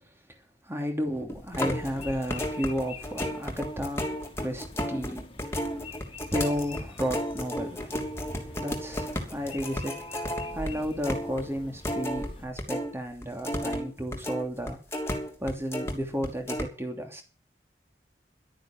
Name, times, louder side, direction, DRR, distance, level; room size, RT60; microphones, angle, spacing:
voice 1, 0.6-4.1 4.4-5.9 6.3-15.1 15.4-17.2, equal, 15° right, 4 dB, 3.0 m, -33 dB
sound 1, 1.3-12.9 13.2-15.9 16.2-16.6, equal, 15° left, 3.1 m, -33 dB
sound 2, 1.5-12.5, left 3 dB, 30° left, 2.3 m, -47 dB
12.0 x 10.0 x 7.5 m, 0.34 s
head